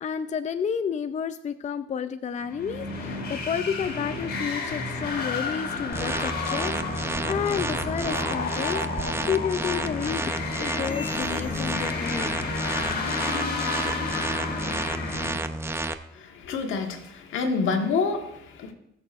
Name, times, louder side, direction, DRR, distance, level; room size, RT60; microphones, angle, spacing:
voice 1, 0.0-12.4, left 7 dB, 35° left, 10 dB, 0.5 m, -31 dB
sound 1, 2.4-15.3, left 4 dB, 55° left, 2.8 m, -31 dB
sound 2, 5.9-15.9, right 2 dB, 10° right, 0.7 m, -31 dB
sound 3, 10.7-12.9 13.2-13.6 14.0-14.3 14.9-15.0 15.7-15.8 16.6-16.7, left 4 dB, 75° right, 3.8 m, -47 dB
voice 2, 16.1-18.7, left 4 dB, 85° left, 4 dB, 1.5 m, -28 dB
19.5 x 6.9 x 2.5 m, 0.81 s
cardioid pair, 90°, 20 cm